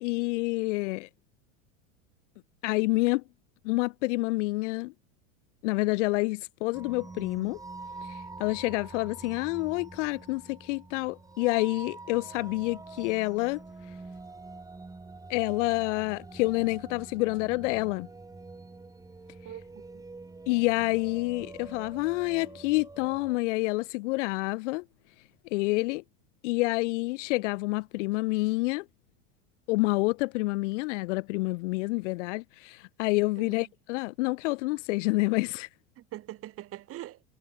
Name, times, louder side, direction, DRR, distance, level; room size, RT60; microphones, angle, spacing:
voice 1, 0.0-1.1 2.6-3.2 3.6-4.9 5.6-7.6 8.4-13.6 15.3-18.1 20.5-24.8 25.5-26.0 26.4-28.8 29.7-35.7, left 23 dB, 65° left, 1.4 m, -28 dB
sound 1, 6.7-23.4, right 3 dB, 10° right, 5.8 m, -46 dB
voice 2, 19.4-20.0 33.4-33.7 36.0-37.2, right 14 dB, 35° right, 3.6 m, -43 dB
supercardioid pair, 145°, 39 cm